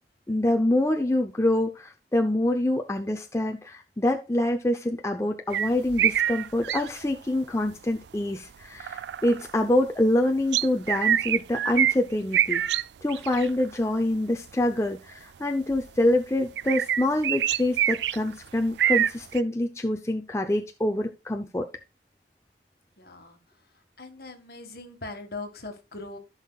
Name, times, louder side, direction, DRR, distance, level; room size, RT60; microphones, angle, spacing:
voice 1, 0.3-21.7, left 1 dB, 15° left, 3 dB, 0.5 m, -26 dB
sound 1, 5.5-7.0 8.8-9.5 10.5-12.0 12.3-12.8 13.1-13.5 14.1-14.2 15.7-16.0 16.6-18.3 18.7-19.4, right 10 dB, 75° right, 0.4 m, -25 dB
voice 2, 23.0-23.4 24.0-26.2, left 3 dB, 55° left, 6 dB, 1.6 m, -40 dB
14.5 x 5.7 x 2.3 m, 0.27 s
head